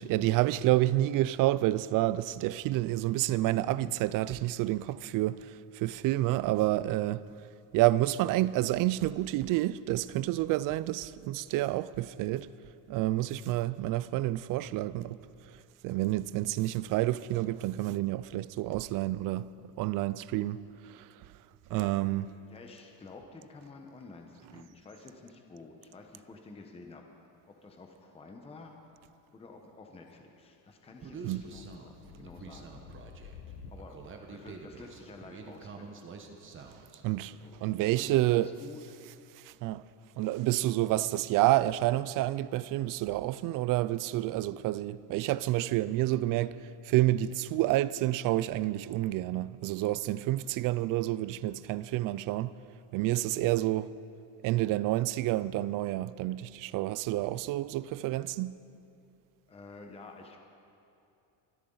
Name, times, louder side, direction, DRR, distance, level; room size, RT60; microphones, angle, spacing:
voice 1, 0.0-7.2 7.7-12.5 12.9-15.2 15.8-19.5 19.8-21.1 21.7-22.3 31.2-31.4 37.0-37.3 37.6-38.6 39.4-39.9 40.2-52.5 52.9-53.9 54.4-58.5, right 16 dB, 50° right, 0.4 m, -29 dB
voice 2, 21.7-22.1 22.5-27.0 27.5-28.8 29.3-32.7 33.7-34.0 34.3-36.1 37.3-39.0 59.5-60.4, left 3 dB, 15° left, 0.9 m, -50 dB
sound 1, 31.0-33.8, left 6 dB, 70° left, 1.2 m, -51 dB
Human voice, 31.0-37.0, right 4 dB, 30° right, 1.2 m, -47 dB
24.0 x 13.0 x 3.9 m
cardioid pair, 150°, 42 cm